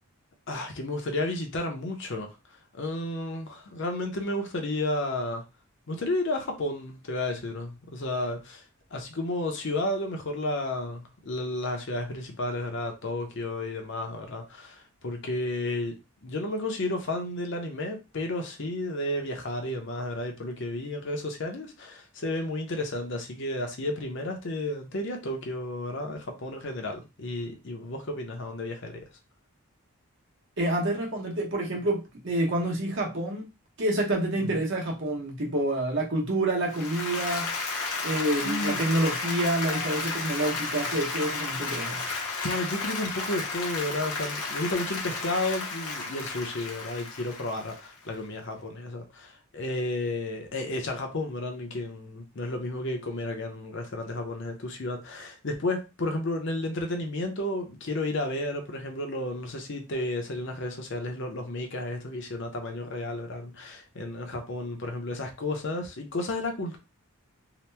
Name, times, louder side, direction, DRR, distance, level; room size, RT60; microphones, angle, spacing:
voice 1, 0.5-5.4 5.9-8.6 8.9-15.9 16.2-29.1 34.3-34.6 38.4-38.8 42.4-66.8, left 1 dB, 55° left, 0.6 m, -32 dB
voice 2, 30.6-33.5 33.8-37.5 38.0-42.0, right 1 dB, 55° right, 1.0 m, -28 dB
Applause, 36.7-48.0, left 3 dB, 80° left, 0.9 m, -33 dB
2.8 x 2.1 x 3.3 m
head